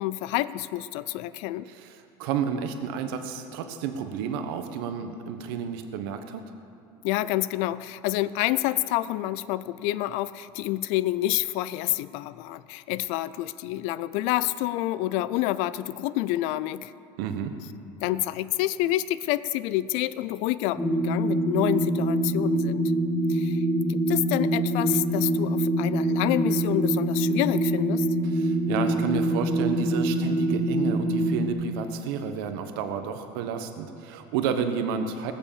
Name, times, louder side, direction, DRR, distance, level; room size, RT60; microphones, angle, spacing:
voice 1, 0.0-1.7 7.0-16.9 18.0-22.9 23.3-28.1, left 15 dB, 70° left, 16 dB, 0.4 m, -28 dB
voice 2, 1.7-6.5 17.2-17.6 28.2-35.3, right 7 dB, 80° right, 7 dB, 1.0 m, -31 dB
sound 1, 20.8-31.5, right 1 dB, 5° left, 1.3 m, -25 dB
19.0 x 7.0 x 7.3 m, 2.4 s
supercardioid pair, 115°, 12 cm